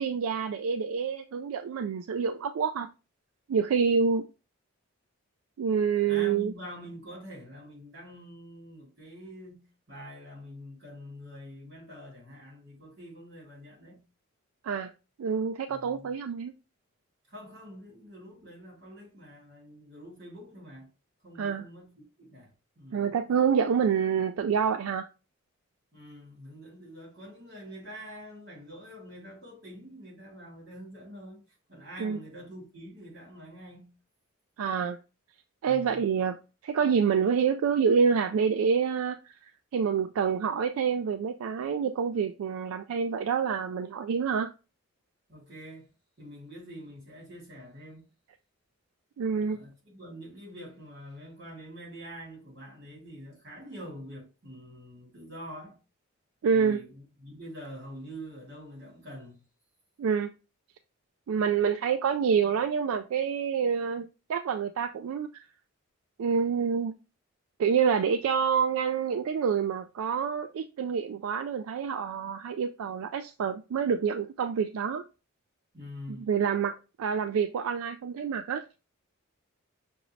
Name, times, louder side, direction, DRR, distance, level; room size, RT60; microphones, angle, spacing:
voice 1, 0.0-2.9 3.5-4.3 5.6-6.5 14.6-14.9 15.2-16.5 21.4-21.6 22.9-25.1 32.0-32.2 34.6-35.0 35.6-36.4 36.6-39.3 39.7-44.5 49.2-49.6 56.4-56.8 60.0-60.3 61.3-65.4 66.2-66.9 67.6-75.0 76.3-78.6, right 6 dB, 80° right, 0.3 m, -27 dB
voice 2, 6.1-14.0 15.7-16.1 17.3-20.9 21.2-23.1 25.9-31.4 31.7-33.9 35.6-36.0 45.3-45.9 46.2-48.0 49.3-55.8 56.5-59.4 75.7-76.3, equal, 50° right, 2.8 m, -46 dB
5.9 x 2.7 x 3.1 m
head